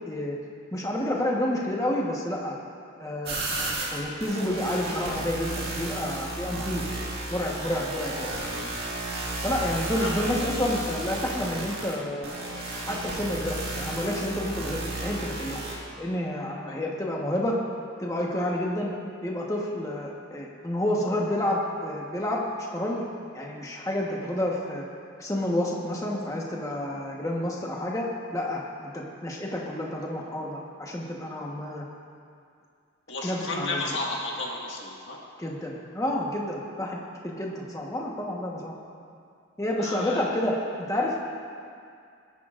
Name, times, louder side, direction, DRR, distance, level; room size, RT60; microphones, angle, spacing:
voice 1, 0.1-0.4 0.7-2.5 3.0-6.8 7.3-8.3 9.4-12.3 12.9-15.6 16.0-17.6 18.0-18.9 19.2-22.4 22.7-23.0 23.3-24.9 25.2-31.9 33.2-34.0 35.4-38.7 39.6-41.3, left 1 dB, 15° left, -2 dB, 1.2 m, -29 dB
sound 1, 3.2-15.7, right 2 dB, 50° right, 2.1 m, -33 dB
voice 2, 33.1-35.2 39.8-40.3, left 2 dB, 60° left, -3 dB, 1.9 m, -32 dB
18.5 x 10.5 x 2.6 m, 2.4 s
head